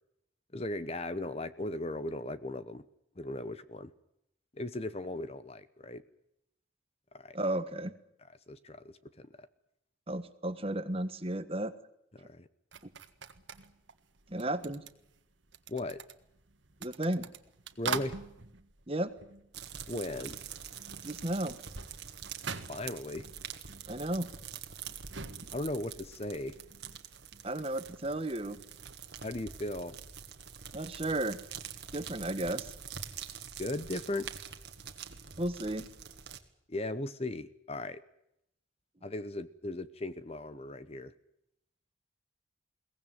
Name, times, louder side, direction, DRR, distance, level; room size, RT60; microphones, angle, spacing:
voice 1, 0.5-2.8 3.2-3.9 4.5-6.0 7.1-7.4 8.5-9.5 12.1-12.5 15.7-16.0 17.8-18.2 19.9-20.4 22.7-23.3 25.5-26.6 29.2-30.0 33.6-34.3 36.7-38.0 39.0-41.1, left 2 dB, 30° left, 14 dB, 0.9 m, -37 dB
voice 2, 7.3-7.9 10.1-11.7 14.3-14.8 16.8-17.3 18.9-19.1 21.0-21.6 23.9-24.3 27.4-28.6 30.7-31.4 31.9-32.7 35.4-35.9, right 1 dB, 30° right, 11 dB, 1.4 m, -33 dB
sound 1, 12.7-20.0 20.3-29.1, right 5 dB, 75° right, 1.6 m, -45 dB
sound 2, 19.5-36.4, right 8 dB, 55° right, 2.0 m, -46 dB
22.5 x 18.0 x 9.3 m, 0.78 s
head